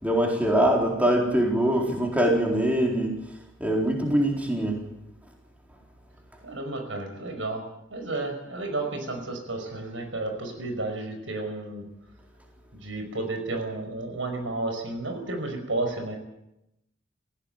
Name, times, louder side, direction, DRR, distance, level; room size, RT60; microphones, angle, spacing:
voice 1, 0.0-3.2 3.6-4.8, right 1 dB, 10° right, 0 dB, 4.1 m, -23 dB
voice 2, 6.4-7.6 7.9-11.8 12.7-16.2, right 2 dB, 80° right, 4 dB, 5.4 m, -32 dB
19.0 x 16.0 x 9.2 m, 0.86 s
head